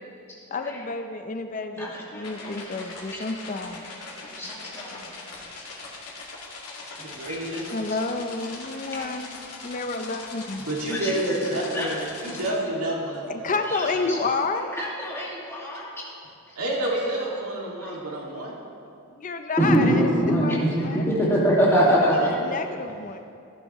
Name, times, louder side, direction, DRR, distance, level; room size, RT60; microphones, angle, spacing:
voice 1, 0.5-3.8 7.7-9.3 9.6-10.7 13.2-14.7 19.2-21.1 21.9-23.2, left 3 dB, 35° left, 6 dB, 0.5 m, -30 dB
voice 2, 1.8-2.9 3.3-3.4 4.3-5.0 5.6-5.7 7.3-8.0 8.9-9.1 10.9-11.9 13.7-15.3 15.6-15.9 16.8-17.1 19.6-22.3, equal, 10° left, -6 dB, 2.0 m, -25 dB
sound 1, 2.2-12.5, left 3 dB, 85° left, 2.3 m, -41 dB
voice 3, 7.0-7.7 10.6-14.1 16.6-18.6 22.5-22.6, right 1 dB, 85° right, -3 dB, 2.3 m, -29 dB
16.0 x 10.5 x 3.1 m, 2.5 s
head